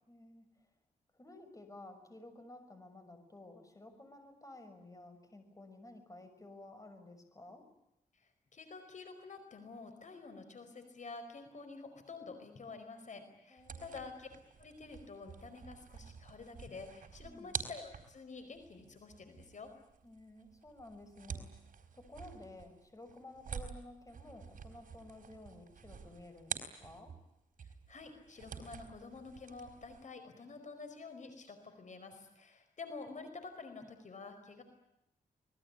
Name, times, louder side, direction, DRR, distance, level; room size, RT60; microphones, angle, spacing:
voice 1, 0.1-0.7 1.1-7.7 13.5-14.2 17.2-17.6 20.0-21.6 21.9-27.2, left 2 dB, 25° left, 7 dB, 6.2 m, -53 dB
voice 2, 8.1-14.3 14.6-19.7 27.6-34.6, left 4 dB, 60° left, 7 dB, 4.9 m, -49 dB
sound 1, 13.6-27.3 27.6-30.1, right 6 dB, 75° right, 4.3 m, -48 dB
27.0 x 20.5 x 9.7 m, 0.88 s
wide cardioid pair, 95°, 14 cm